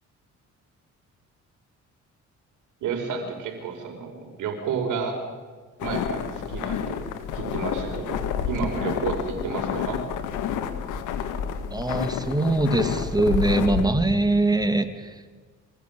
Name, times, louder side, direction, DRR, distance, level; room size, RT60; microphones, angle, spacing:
voice 1, 2.8-5.2 5.8-7.0 7.3-10.0, right 6 dB, 85° right, 4 dB, 5.3 m, -31 dB
sound 1, 5.8-13.9, left 8 dB, 90° left, 1.9 m, -29 dB
voice 2, 11.7-14.9, right 2 dB, 15° right, 8 dB, 2.3 m, -22 dB
25.0 x 16.0 x 8.9 m, 1.4 s
cardioid pair, 90°, 30 cm